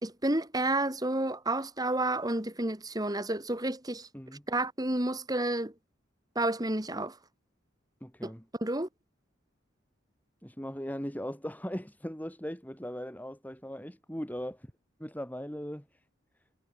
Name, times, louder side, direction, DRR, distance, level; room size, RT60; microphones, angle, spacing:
voice 1, 0.0-4.1 4.5-5.7 6.3-7.2 8.2-8.3 8.6-8.9, right 1 dB, 20° right, 2.9 m, -30 dB
voice 2, 8.0-8.4 10.4-14.7 15.0-15.9, equal, 10° left, 5.7 m, -39 dB
head